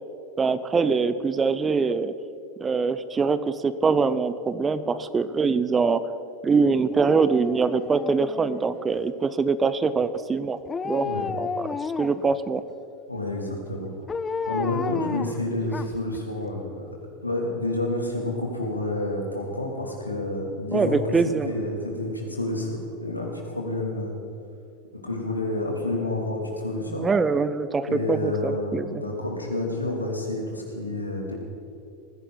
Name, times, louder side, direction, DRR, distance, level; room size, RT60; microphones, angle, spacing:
voice 1, 0.4-2.1 2.6-6.0 6.4-10.6 10.8-11.1 11.4-11.5 11.8-12.6 20.7-21.5 26.9-29.0, right 4 dB, 20° right, 14 dB, 0.7 m, -23 dB
Dog, 6.9-9.0 10.6-12.3 14.1-16.2 16.5-16.6, left 5 dB, 20° left, 0.5 m, -32 dB
voice 2, 13.1-13.9 14.5-16.8 17.2-21.2 21.4-22.7 23.0-24.1 25.0-27.1 27.8-31.3, left 2 dB, 85° left, 0 dB, 2.9 m, -29 dB
19.5 x 15.5 x 4.1 m, 2.7 s
figure-of-eight pair, 85°, 0 cm